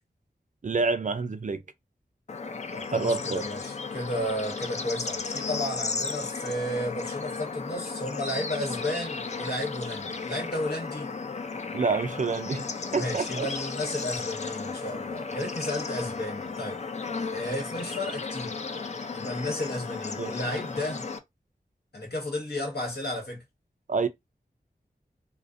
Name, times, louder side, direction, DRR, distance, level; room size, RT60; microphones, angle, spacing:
voice 1, 0.6-1.6 2.9-3.4 11.7-12.7 12.9-13.5 20.2-20.3 23.9-24.1, right 4 dB, 50° right, 0.4 m, -27 dB
Bird / Insect / Frog, 2.3-21.2, left 4 dB, 45° left, 0.4 m, -35 dB
voice 2, 2.7-11.1 12.9-16.8 17.3-18.5 19.1-21.0 21.9-23.4, left 1 dB, 75° left, 1.2 m, -33 dB
2.5 x 2.0 x 2.4 m
wide cardioid pair, 55°, 17 cm